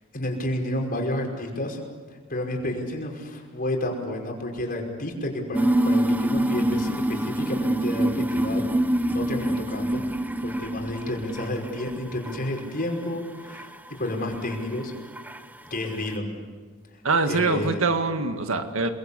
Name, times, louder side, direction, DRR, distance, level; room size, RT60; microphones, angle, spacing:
voice 1, 0.1-1.8 2.3-8.6 9.0-10.0 10.4-14.9 15.7-16.3 17.3-17.9, left 1 dB, 45° left, 1 dB, 5.5 m, -30 dB
sound 1, 5.5-12.0 12.3-12.8 13.5-13.6 14.5-14.6 15.2-15.4, right 1 dB, 10° right, 0.8 m, -25 dB
voice 2, 17.0-18.9, right 3 dB, 75° right, 7 dB, 1.9 m, -24 dB
29.5 x 21.5 x 8.4 m, 1.5 s
head